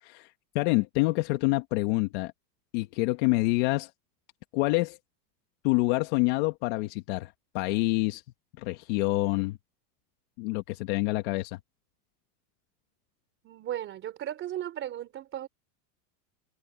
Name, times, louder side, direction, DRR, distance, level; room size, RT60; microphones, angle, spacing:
voice 1, 0.0-2.3 2.7-3.9 4.5-5.0 5.6-8.2 8.6-9.6 10.4-11.6, left 22 dB, 45° left, 1.4 m, -27 dB
voice 2, 13.4-15.5, right 11 dB, 25° right, 3.6 m, -36 dB
supercardioid pair, 165°, 46 cm